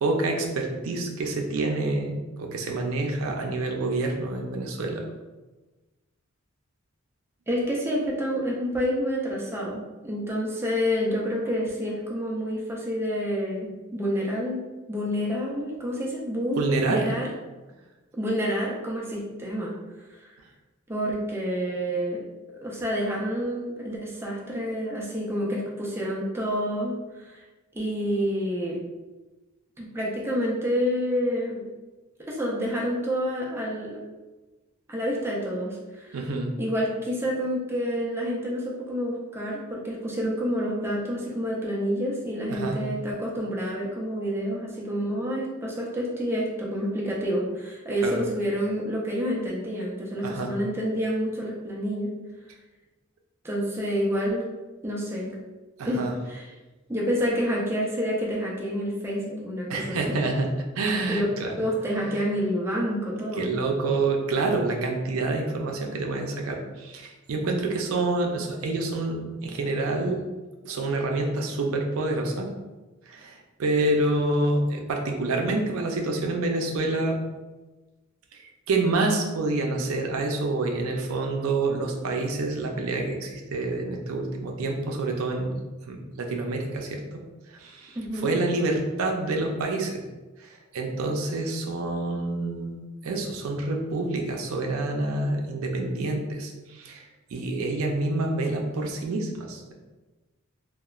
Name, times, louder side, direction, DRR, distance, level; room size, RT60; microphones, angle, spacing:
voice 1, 0.0-5.0 16.5-17.1 36.1-36.5 42.5-42.8 48.0-48.2 50.2-50.5 55.8-56.1 59.7-61.5 62.1-62.2 63.4-70.2 70.6-72.5 73.1-77.2 78.3-85.6 85.9-87.2 87.5-90.0 90.4-99.7, right 2 dB, 90° right, 2 dB, 0.4 m, -27 dB
voice 2, 7.5-14.6 14.9-17.3 18.2-19.7 20.1-20.3 20.9-22.2 22.6-27.4 27.7-28.8 29.8-31.6 32.2-34.0 34.9-36.2 36.6-52.1 53.4-54.5 54.8-55.4 55.8-56.5 56.9-60.2 61.1-61.2 61.6-63.5 88.0-88.3, equal, 10° right, -4 dB, 0.4 m, -28 dB
2.9 x 2.1 x 2.3 m, 1.2 s
head